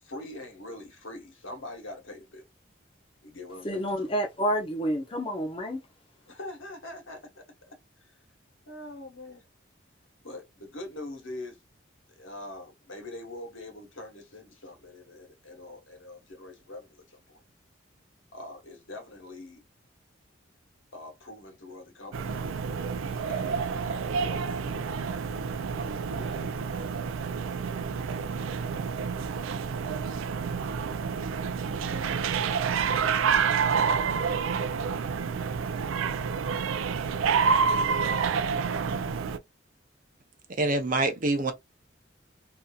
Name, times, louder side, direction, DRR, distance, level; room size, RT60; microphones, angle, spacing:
voice 1, 0.0-2.4 3.2-4.1 6.3-8.1 8.7-9.4 10.2-11.6 12.2-17.4 18.3-19.6 20.9-22.6 23.0-24.4 26.0-26.9, left 2 dB, 85° left, 1.2 m, -43 dB
voice 2, 3.6-5.8, equal, 25° left, 0.7 m, -29 dB
sound 1, 22.1-39.4, right 6 dB, 90° right, 0.4 m, -28 dB
voice 3, 40.6-41.5, right 2 dB, 40° right, 0.6 m, -25 dB
2.7 x 2.5 x 2.3 m
head